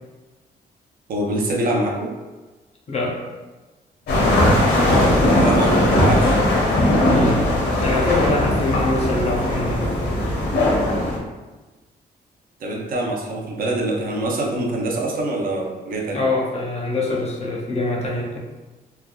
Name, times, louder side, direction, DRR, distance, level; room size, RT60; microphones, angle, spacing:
voice 1, 1.1-2.2 4.9-6.4 12.6-16.2, right 1 dB, 60° right, -1 dB, 0.5 m, -24 dB
voice 2, 2.9-3.2 7.1-7.5 7.8-10.2 16.1-18.4, left 2 dB, 40° left, -2 dB, 0.5 m, -24 dB
sound 1, 4.1-11.2, left 1 dB, 80° left, 0.8 m, -18 dB
3.2 x 2.2 x 2.3 m, 1.2 s
wide cardioid pair, 155°, 17 cm